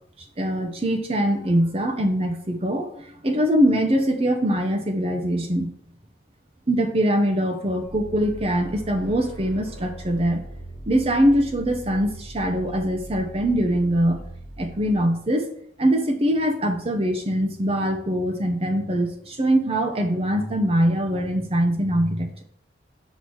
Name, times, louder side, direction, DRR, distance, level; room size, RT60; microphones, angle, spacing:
voice 1, 0.4-2.9 3.2-5.7 6.7-10.4 10.9-14.2 14.6-15.5 15.8-22.4, equal, 35° right, 5 dB, 0.8 m, -22 dB
sound 1, 7.8-15.3, right 1 dB, 80° right, 2.4 m, -39 dB
6.2 x 3.9 x 6.1 m, 0.65 s
head